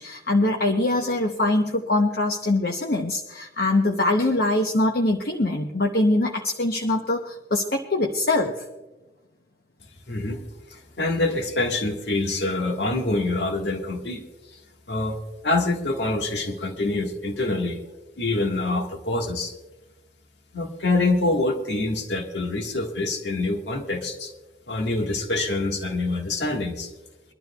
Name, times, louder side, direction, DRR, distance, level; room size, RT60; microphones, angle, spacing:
voice 1, 0.0-8.7, left 2 dB, 55° left, 3 dB, 0.8 m, -23 dB
voice 2, 10.1-10.4 10.7-14.2 14.5-14.6 14.9-17.8 18.2-19.5 20.5-24.3 24.7-26.9, left 2 dB, 75° left, 3 dB, 1.6 m, -26 dB
24.0 x 12.0 x 2.3 m, 1.1 s
head